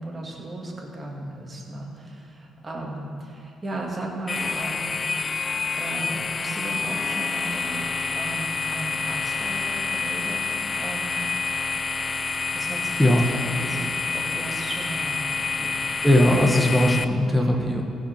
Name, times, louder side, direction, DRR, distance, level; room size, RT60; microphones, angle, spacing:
voice 1, 0.0-10.4 10.8-11.3 12.5-16.0 16.3-16.6, right 2 dB, 25° right, -2 dB, 2.0 m, -36 dB
sound 1, 4.3-17.0, left 4 dB, 30° left, 0.4 m, -28 dB
voice 2, 16.0-17.8, left 1 dB, 5° left, 1 dB, 1.2 m, -19 dB
15.5 x 5.3 x 5.8 m, 2.8 s
cardioid pair, 90°, 0 cm